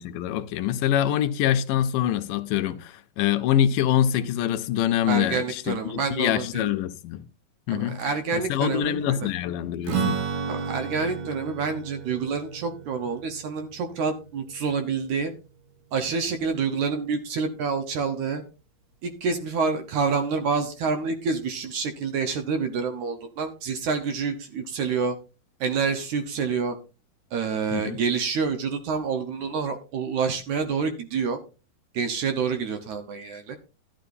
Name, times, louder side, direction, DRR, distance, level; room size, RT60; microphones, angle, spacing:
voice 1, 0.0-7.3 7.7-8.0 8.3-10.2 27.7-28.0, left 10 dB, 80° left, 2.1 m, -25 dB
voice 2, 5.1-6.6 7.7-9.3 10.5-15.3 15.9-18.4 19.0-25.2 25.6-26.8 27.3-31.4 31.9-33.6, right 5 dB, 65° right, 2.1 m, -27 dB
Strum, 9.9-15.5, right 6 dB, 85° right, 3.9 m, -33 dB
12.0 x 11.5 x 2.7 m
omnidirectional pair, 4.3 m